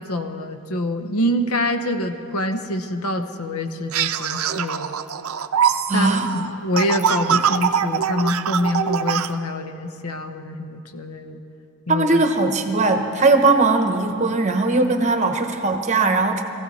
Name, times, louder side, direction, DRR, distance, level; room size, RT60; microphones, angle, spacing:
voice 1, 0.0-4.9 5.9-11.4 11.9-12.2, left 1 dB, 75° left, 7 dB, 0.9 m, -25 dB
sound 1, 3.9-9.3, right 8 dB, 70° right, 0.5 m, -23 dB
voice 2, 5.9-6.3 11.9-16.4, right 3 dB, 30° right, 6 dB, 1.0 m, -19 dB
22.0 x 15.5 x 4.2 m, 2.5 s
head